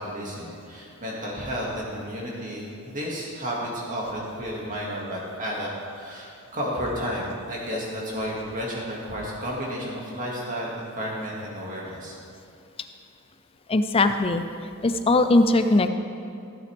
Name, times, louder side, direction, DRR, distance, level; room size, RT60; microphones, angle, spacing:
voice 1, 0.0-12.1, equal, 35° right, -4 dB, 2.3 m, -32 dB
voice 2, 13.7-14.4 14.8-15.9, left 2 dB, 25° left, 8 dB, 0.5 m, -20 dB
15.0 x 8.5 x 3.6 m, 2.7 s
head